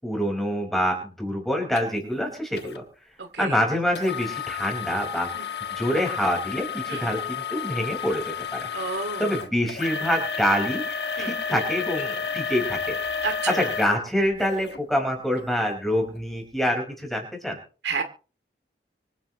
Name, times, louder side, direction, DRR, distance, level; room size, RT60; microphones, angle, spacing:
voice 1, 0.0-2.8 3.4-5.3 5.7-8.7 9.2-13.0 13.5-17.6, equal, ahead, 1 dB, 5.1 m, -26 dB
sound 1, 1.8-1.9 2.6-2.8 4.0-14.8 15.4-15.5 16.1-16.2, left 6 dB, 70° left, 1.5 m, -31 dB
voice 2, 3.2-3.6 5.3-5.5 6.9-7.1 8.7-9.3 11.2-11.3 13.2-13.7 17.8-18.0, right 5 dB, 85° right, 6 dB, 2.5 m, -31 dB
25.0 x 10.0 x 3.1 m, 0.38 s
head